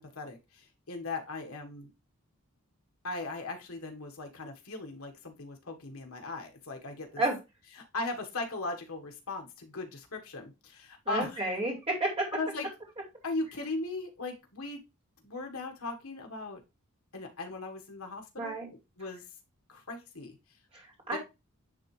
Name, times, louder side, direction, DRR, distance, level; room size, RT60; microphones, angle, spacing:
voice 1, 0.0-1.9 3.0-7.2 7.8-11.5 12.3-12.7 13.2-14.8 15.2-16.6 17.1-18.6 19.0-19.2 19.7-20.4 21.1-21.2, left 3 dB, 70° left, 4 dB, 1.5 m, -38 dB
voice 2, 11.1-12.3 18.4-18.7 20.7-21.2, right 2 dB, 25° right, -1 dB, 2.6 m, -31 dB
10.0 x 3.6 x 3.2 m, 0.25 s
head